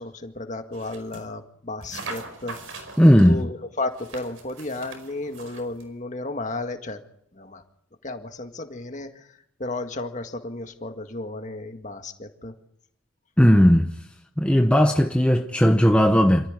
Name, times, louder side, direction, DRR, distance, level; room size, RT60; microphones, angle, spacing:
voice 1, 0.0-2.6 3.3-7.0 7.3-7.6 8.0-9.3 9.6-12.5, left 2 dB, 35° left, 1.9 m, -33 dB
sound 1, 0.7-1.3 1.8-3.3 3.9-5.9, right 3 dB, 80° right, 5.3 m, -41 dB
voice 2, 3.0-3.4 13.4-13.9 14.4-16.5, equal, 5° left, 0.9 m, -16 dB
27.0 x 14.5 x 9.8 m
head